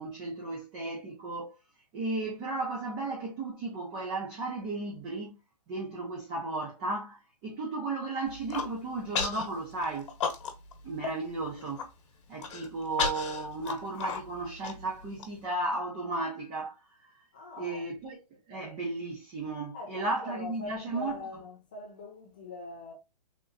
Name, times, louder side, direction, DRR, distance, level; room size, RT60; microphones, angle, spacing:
voice 1, 0.0-1.5 1.9-5.4 5.7-10.1 10.8-11.9 12.3-17.2 17.6-21.2, right 2 dB, 20° right, 0.7 m, -35 dB
Human voice, 8.3-8.7 9.1-9.5 9.8-10.7 11.0-11.1 11.5-11.9 12.4-15.3, left 5 dB, 45° left, 1.1 m, -33 dB
voice 2, 17.3-17.8 19.7-22.9, left 2 dB, 15° left, 0.3 m, -42 dB
3.6 x 2.9 x 2.6 m
hypercardioid pair, 170°, 21 cm